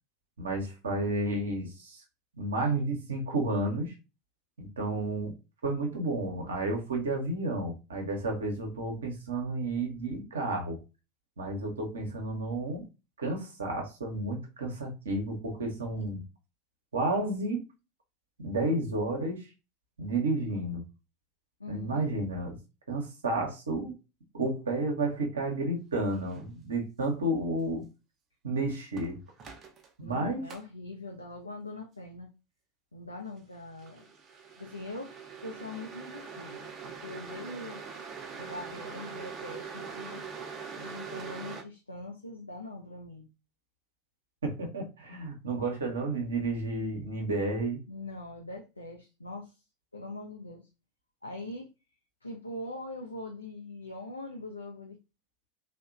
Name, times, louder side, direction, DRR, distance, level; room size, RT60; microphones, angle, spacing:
voice 1, 0.4-2.0 2.4-3.9 4.6-5.3 5.6-10.8 11.4-12.9 13.2-16.2 16.9-17.6 18.4-19.5 20.0-20.9 21.7-22.6 22.9-23.9 24.3-27.9 28.4-29.2 30.0-30.4 44.4-47.8, right 2 dB, 70° right, 1 dB, 0.7 m, -31 dB
voice 2, 21.6-22.0 30.0-32.3 32.9-34.1 34.6-35.1 35.4-37.8 38.4-40.2 40.8-43.3 47.9-49.6 49.9-50.7 51.2-51.7 52.2-55.0, left 2 dB, 85° left, 0 dB, 0.3 m, -42 dB
sound 1, 26.3-26.5 29.0-29.9 30.5-30.6 33.8-41.6, right 5 dB, 35° right, 0.5 m, -43 dB
2.8 x 2.1 x 2.4 m, 0.28 s
figure-of-eight pair, 80°, 0 cm